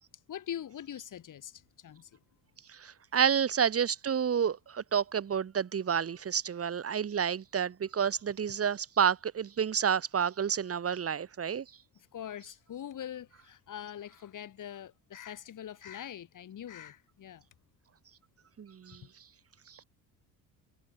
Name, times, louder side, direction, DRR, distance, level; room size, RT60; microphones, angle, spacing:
voice 1, 0.1-2.2 12.0-17.4, left 10 dB, 55° left, 8.0 m, -43 dB
voice 2, 2.7-11.6 18.6-19.0 19.7-19.8, right 7 dB, 40° right, 2.3 m, -30 dB
supercardioid pair, 80°, 38 cm